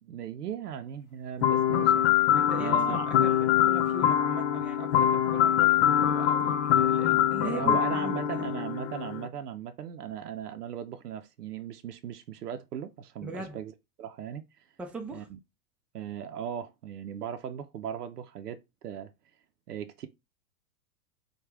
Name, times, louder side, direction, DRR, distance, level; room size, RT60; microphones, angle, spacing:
voice 1, 0.0-2.1 2.6-3.1 7.4-13.7 14.0-14.7 15.1-15.4 15.9-19.1 19.7-20.1, right 9 dB, 85° right, 0.6 m, -38 dB
sound 1, 1.4-9.3, left 10 dB, 50° left, 0.7 m, -24 dB
voice 2, 2.3-8.5 13.2-13.6 14.8-15.3, right 3 dB, 5° right, 0.4 m, -40 dB
4.7 x 2.4 x 3.5 m
hypercardioid pair, 110°, 46 cm